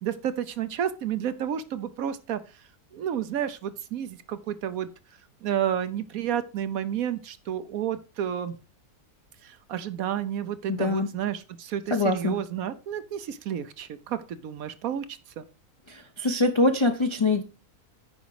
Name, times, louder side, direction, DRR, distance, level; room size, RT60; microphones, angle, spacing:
voice 1, 0.0-2.4 2.9-4.9 5.4-8.6 9.4-15.1 15.4-15.5, right 9 dB, 70° right, 12 dB, 1.1 m, -31 dB
voice 2, 10.7-11.1 11.9-12.4 15.9-17.4, left 2 dB, 45° left, 5 dB, 0.3 m, -24 dB
9.3 x 5.0 x 4.7 m, 0.33 s
omnidirectional pair, 1.7 m